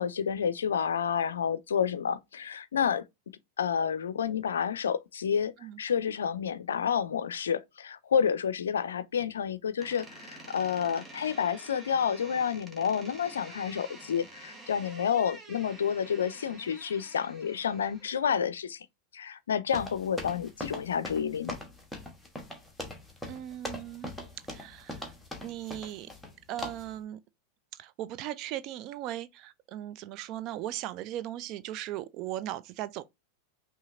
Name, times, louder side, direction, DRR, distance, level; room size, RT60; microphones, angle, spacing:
voice 1, 0.0-3.0 3.6-5.5 5.8-18.9 19.1-21.6, left 7 dB, 65° left, 0.4 m, -29 dB
Door, 9.8-18.3, right 2 dB, 15° right, 1.2 m, -49 dB
sound 1, 19.7-26.3 26.6-26.9, left 1 dB, 5° left, 1.1 m, -41 dB
voice 2, 23.3-24.2 24.5-25.1 25.4-26.1 26.5-27.2 27.8-33.0, right 13 dB, 40° right, 0.3 m, -38 dB
5.6 x 2.7 x 2.5 m
figure-of-eight pair, 90°, 0 cm